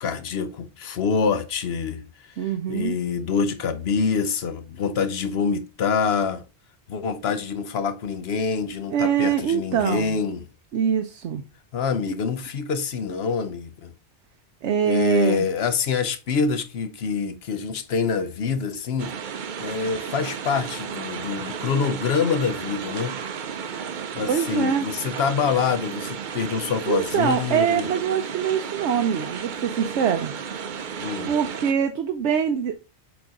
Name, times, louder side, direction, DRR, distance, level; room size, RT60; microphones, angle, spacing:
voice 1, 0.0-6.4 6.9-10.4 11.7-13.9 14.8-19.1 19.6-23.1 24.1-27.9 31.0-31.3, left 6 dB, 65° left, 1.0 m, -26 dB
voice 2, 2.4-2.9 8.9-10.2 10.7-11.4 14.6-15.5 24.3-24.8 26.9-30.3 31.3-32.8, right 8 dB, 85° right, 1.0 m, -24 dB
sound 1, 19.0-31.7, right 7 dB, 50° right, 0.7 m, -33 dB
7.0 x 4.0 x 3.7 m
omnidirectional pair, 1.2 m